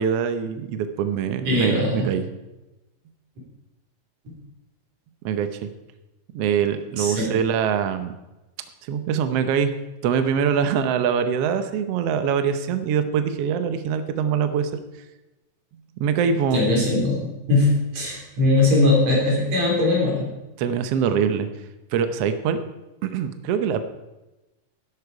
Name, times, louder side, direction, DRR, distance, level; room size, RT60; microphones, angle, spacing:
voice 1, 0.0-2.2 5.2-5.7 6.3-8.1 8.8-9.7 10.0-14.7 16.0-16.6 20.6-21.5 21.9-22.6 23.0-23.8, right 7 dB, 90° right, 9 dB, 1.3 m, -23 dB
voice 2, 1.4-2.1 4.3-4.4 7.0-7.3 16.5-20.3, left 2 dB, 50° right, -2 dB, 4.6 m, -20 dB
12.0 x 11.5 x 4.8 m, 1.0 s
omnidirectional pair, 3.9 m